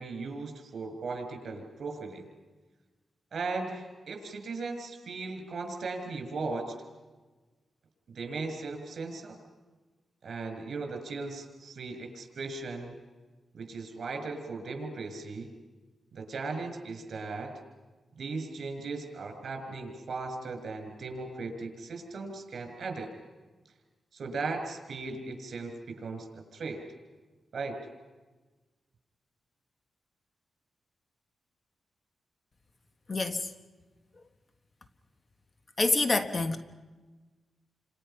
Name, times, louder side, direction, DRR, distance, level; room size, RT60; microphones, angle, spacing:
voice 1, 0.0-2.2 3.3-6.7 8.1-9.4 10.2-13.0 13.5-15.5 16.1-17.5 18.2-23.1 24.1-26.8 27.5-27.8, right 3 dB, 60° right, 6.0 m, -37 dB
voice 2, 33.1-33.4 35.8-36.6, left 3 dB, 35° left, 1.4 m, -26 dB
30.0 x 26.5 x 5.8 m
wide cardioid pair, 115°, 0 cm